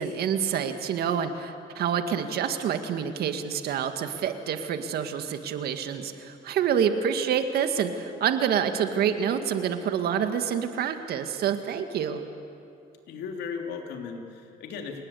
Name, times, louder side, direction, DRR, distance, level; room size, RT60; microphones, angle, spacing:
voice 1, 0.0-12.2, right 8 dB, 70° right, 7 dB, 2.0 m, -27 dB
voice 2, 13.1-15.0, left 6 dB, 80° left, 3 dB, 3.2 m, -36 dB
27.5 x 19.0 x 8.5 m, 2.5 s
cardioid pair, 110°, 17 cm